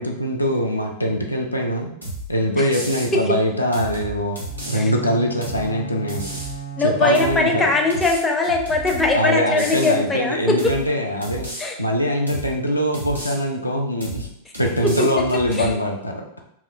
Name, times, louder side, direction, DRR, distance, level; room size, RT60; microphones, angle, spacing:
voice 1, 0.0-1.9 2.3-4.4 4.7-6.3 6.8-7.7 9.1-11.5 11.8-14.3 14.6-16.4, equal, 85° left, 1 dB, 0.3 m, -22 dB
sound 1, 2.0-2.3 2.7-3.1 3.7-4.8 5.4-5.7 6.1-6.6 7.1-7.4 7.9-9.1 9.6-10.0 10.6-10.9 11.2-11.6 12.3-12.5 12.9-13.4 14.0-14.3 14.5-15.7, right 1 dB, 85° right, 0.7 m, -33 dB
Bowed string instrument, 4.4-8.1, right 8 dB, 50° right, 0.8 m, -36 dB
voice 2, 6.8-10.6 11.6-11.8 15.5-15.8, left 3 dB, 15° left, 1 dB, 0.4 m, -21 dB
2.9 x 2.0 x 2.4 m, 0.74 s
figure-of-eight pair, 90°, 0 cm